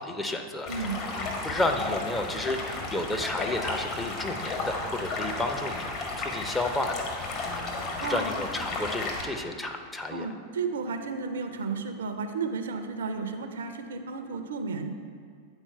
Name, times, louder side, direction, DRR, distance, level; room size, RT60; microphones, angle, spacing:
voice 1, 0.0-10.3, left 2 dB, 10° left, 4 dB, 0.6 m, -32 dB
Stream, 0.7-9.2, left 3 dB, 40° left, 1.3 m, -33 dB
voice 2, 8.0-8.4 10.1-14.9, right 4 dB, 65° right, 7 dB, 0.5 m, -33 dB
8.9 x 4.3 x 4.4 m, 2.1 s
figure-of-eight pair, 90°, 0 cm